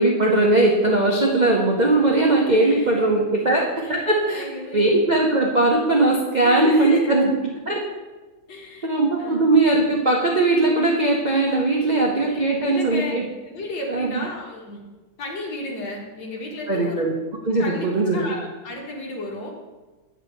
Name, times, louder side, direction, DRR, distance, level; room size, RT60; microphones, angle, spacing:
voice 1, 0.0-4.4 4.7-7.3 7.7-7.8 8.8-13.2 13.9-14.2 16.7-17.1 17.4-18.3, right 2 dB, 70° right, -2 dB, 0.4 m, -19 dB
voice 2, 2.6-3.0 3.3-3.6 3.9-4.9 6.4-7.1 8.5-8.9 9.2-9.4 11.8-13.2 13.5-14.8 15.2-17.1 17.6-19.5, left 2 dB, 65° left, -1 dB, 2.1 m, -33 dB
9.1 x 4.0 x 6.4 m, 1.2 s
omnidirectional pair, 2.2 m